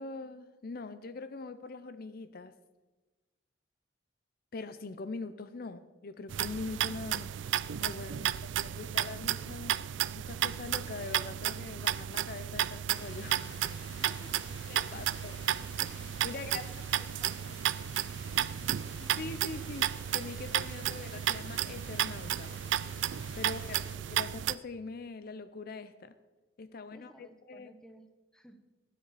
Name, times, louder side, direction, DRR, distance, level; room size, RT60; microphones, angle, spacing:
voice 1, 0.0-2.5 4.5-7.3 7.6-9.8 10.2-13.6 14.7-15.4 15.8-16.7 19.0-22.6 23.3-23.8 24.1-26.2 26.6-27.7, left 3 dB, 55° left, 12 dB, 0.5 m, -43 dB
sound 1, 6.3-24.5, right 11 dB, 75° right, 0.4 m, -33 dB
sound 2, 12.9-24.0, left 4 dB, 75° left, 1.3 m, -52 dB
voice 2, 13.9-14.5 16.3-18.2 26.9-28.1 28.3-28.6, equal, 5° left, 6 dB, 1.0 m, -58 dB
22.5 x 7.6 x 4.1 m, 1.2 s
head